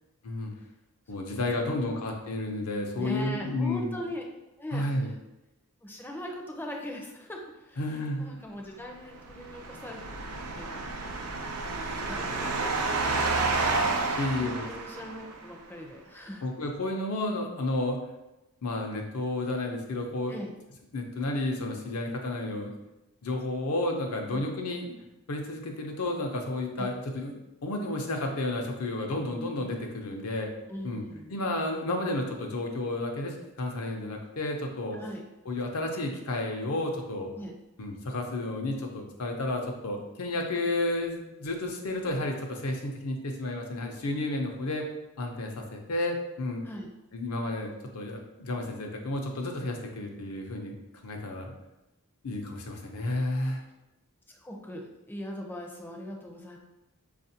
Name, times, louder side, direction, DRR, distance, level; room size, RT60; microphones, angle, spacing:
voice 1, 1.1-3.9 4.7-5.1 7.8-8.3 14.2-14.7 16.4-18.0 18.6-20.3 20.9-22.7 23.2-24.9 25.3-27.4 27.6-30.5 30.8-31.0 31.3-35.0 35.5-37.3 37.8-44.9 45.2-46.6 47.1-50.7 51.0-51.5 52.2-53.6, left 2 dB, 75° left, 2 dB, 0.6 m, -31 dB
voice 2, 3.0-4.3 4.6-5.1 5.8-7.9 8.2-10.0 10.6-11.2 11.6-13.4 14.4-16.5 20.3-20.5 24.3-24.6 26.8-26.9 30.7-31.4 34.9-35.3 37.3-37.5 46.6-46.9 54.3-56.6, equal, 10° left, 1 dB, 0.4 m, -40 dB
sound 1, 9.1-15.5, right 3 dB, 80° right, 0.5 m, -30 dB
4.8 x 2.4 x 2.7 m, 0.95 s
head